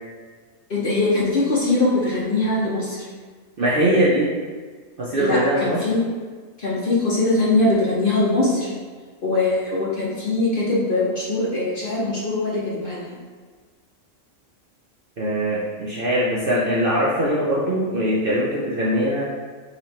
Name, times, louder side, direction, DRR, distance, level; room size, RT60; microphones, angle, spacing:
voice 1, 0.7-3.1 5.2-6.0 6.6-8.7 9.2-13.1, left 2 dB, 45° left, -6 dB, 0.8 m, -22 dB
voice 2, 3.6-4.3 5.0-5.8 15.2-19.2, right 1 dB, 55° right, -6 dB, 0.6 m, -21 dB
3.3 x 3.0 x 4.2 m, 1.5 s
omnidirectional pair, 1.5 m